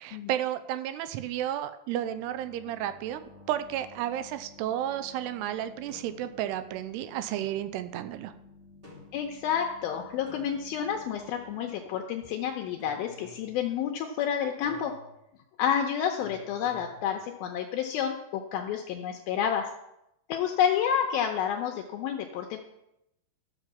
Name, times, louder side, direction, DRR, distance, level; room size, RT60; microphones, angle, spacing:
voice 1, 0.0-8.3, right 11 dB, 90° right, 11 dB, 2.7 m, -32 dB
sound 1, 1.9-13.3, left 3 dB, 40° right, 2.9 m, -54 dB
sound 2, 5.9-6.3 7.3-7.8 8.8-9.3 10.3-11.1 12.8-13.6 14.6-15.2 16.2-17.2, left 1 dB, 15° right, 2.4 m, -51 dB
voice 2, 9.1-14.9 15.6-19.7 20.3-22.6, left 8 dB, 80° left, 3 dB, 2.4 m, -29 dB
12.5 x 6.4 x 7.1 m, 0.86 s
omnidirectional pair, 4.7 m